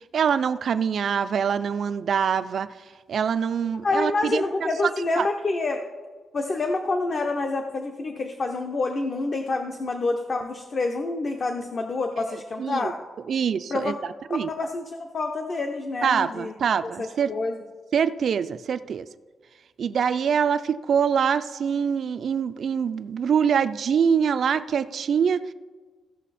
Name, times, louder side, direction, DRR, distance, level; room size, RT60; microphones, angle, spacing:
voice 1, 0.1-2.7 3.1-4.4 5.2-5.3 12.6-12.9 13.3-13.9 14.3-14.5 16.0-17.3 17.9-19.1 19.8-25.4, right 7 dB, 55° right, 12 dB, 0.4 m, -24 dB
voice 2, 3.8-5.8 6.3-13.0 13.7-14.0 14.5-16.5 16.8-17.6, left 3 dB, 40° left, 4 dB, 0.7 m, -27 dB
15.5 x 6.2 x 4.2 m, 1.4 s
wide cardioid pair, 150°, 0 cm